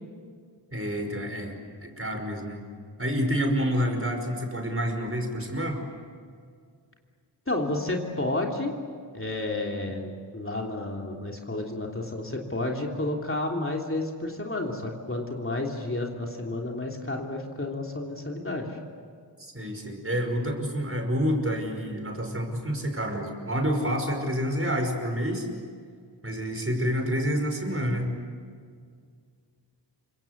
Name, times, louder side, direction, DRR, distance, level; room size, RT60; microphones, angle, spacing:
voice 1, 0.7-1.5 1.8-2.6 3.0-5.8 19.4-25.5 26.2-28.2, equal, 30° right, 3 dB, 5.3 m, -28 dB
voice 2, 7.5-8.7 9.1-18.8, left 2 dB, 30° left, 0 dB, 3.2 m, -31 dB
28.5 x 25.0 x 8.1 m, 2.1 s
wide cardioid pair, 90°, 44 cm